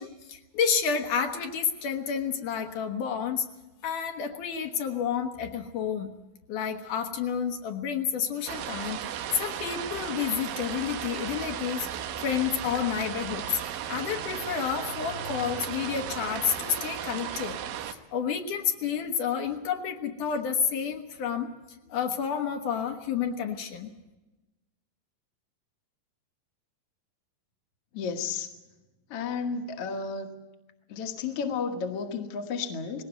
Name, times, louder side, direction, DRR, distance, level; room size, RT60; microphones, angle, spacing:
voice 1, 0.0-3.5 3.8-6.1 6.5-11.9 12.2-21.5 21.9-23.9, left 7 dB, 70° left, 3 dB, 2.6 m, -30 dB
sound 1, 8.5-17.9, right 10 dB, 85° right, 2.7 m, -35 dB
voice 2, 27.9-28.5 29.1-30.4 30.9-33.0, left 5 dB, 55° left, 3 dB, 2.0 m, -32 dB
20.0 x 17.5 x 8.1 m, 1.1 s
omnidirectional pair, 4.0 m